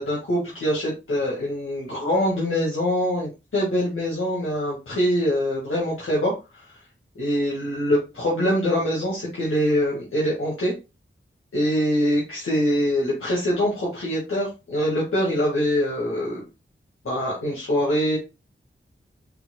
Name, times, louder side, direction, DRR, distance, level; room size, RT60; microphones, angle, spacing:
voice 1, 0.0-6.6 7.2-10.7 11.5-16.4 17.0-18.2, equal, 90° left, -5 dB, 1.8 m, -24 dB
5.7 x 4.1 x 2.2 m, 0.27 s
wide cardioid pair, 85°, 21 cm